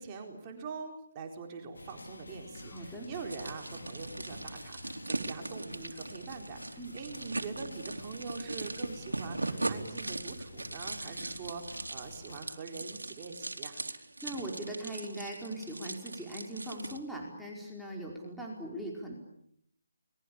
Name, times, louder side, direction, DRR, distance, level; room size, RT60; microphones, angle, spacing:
voice 1, 0.0-13.8, right 5 dB, 25° right, 2 dB, 4.3 m, -44 dB
sound 1, 1.7-12.4, left 2 dB, 85° left, 4.8 m, -49 dB
voice 2, 2.6-3.1 6.8-6.9 14.2-19.1, right 1 dB, ahead, -3 dB, 4.8 m, -40 dB
sound 2, 3.3-17.0, right 2 dB, 90° right, 3.4 m, -40 dB
28.5 x 22.0 x 8.7 m, 0.72 s
figure-of-eight pair, 155°, 0 cm